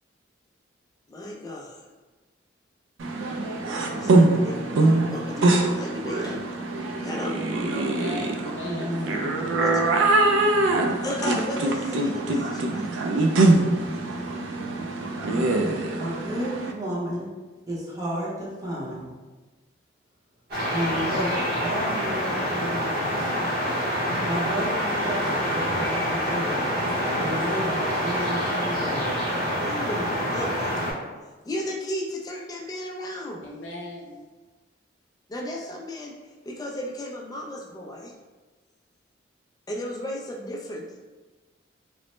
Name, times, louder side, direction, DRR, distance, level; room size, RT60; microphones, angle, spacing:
voice 1, 1.1-1.8 3.2-3.3 3.6-6.5 7.0-7.4 9.6-9.7 11.0-12.9 13.4-13.5 13.9-14.0 29.6-30.7 31.5-33.4 35.3-36.2 36.4-38.1 39.7-40.9, left 1 dB, 20° left, 0 dB, 0.3 m, -34 dB
sound 1, 3.0-16.7, right 2 dB, 85° right, 0.3 m, -23 dB
voice 2, 7.7-9.1 33.4-34.2, left 2 dB, 75° left, -2 dB, 0.6 m, -38 dB
voice 3, 8.6-9.4 15.3-15.7 16.0-17.3 17.7-19.1 20.7-23.3 24.2-26.6 27.2-29.2, equal, 20° right, -7 dB, 0.6 m, -32 dB
sound 2, 20.5-30.9, equal, 55° right, 0.8 m, -26 dB
3.1 x 2.0 x 3.0 m, 1.3 s
head